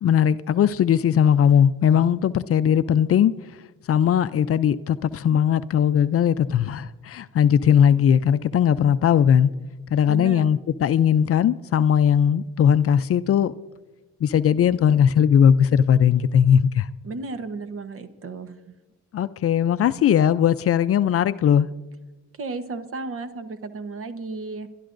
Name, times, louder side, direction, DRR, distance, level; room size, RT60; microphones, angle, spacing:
voice 1, 0.0-3.3 3.9-9.5 9.9-13.5 14.2-16.9 19.1-21.7, left 8 dB, 50° left, 0.5 m, -19 dB
voice 2, 10.0-10.6 17.0-18.8 22.4-24.7, right 3 dB, 45° right, 1.1 m, -34 dB
30.0 x 12.0 x 2.6 m
cardioid pair, 90°, 30 cm